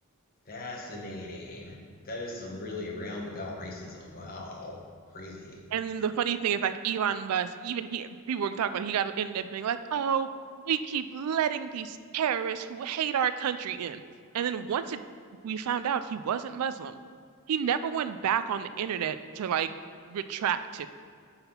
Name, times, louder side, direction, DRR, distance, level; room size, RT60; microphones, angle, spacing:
voice 1, 0.4-1.8 2.0-4.8 5.1-5.6, left 2 dB, 40° left, -1 dB, 1.1 m, -39 dB
voice 2, 5.7-10.3 10.7-14.0 14.3-15.0 15.4-17.0 17.5-19.7 20.1-20.9, right 8 dB, 80° right, 11 dB, 0.4 m, -30 dB
7.8 x 4.2 x 5.6 m, 2.2 s
head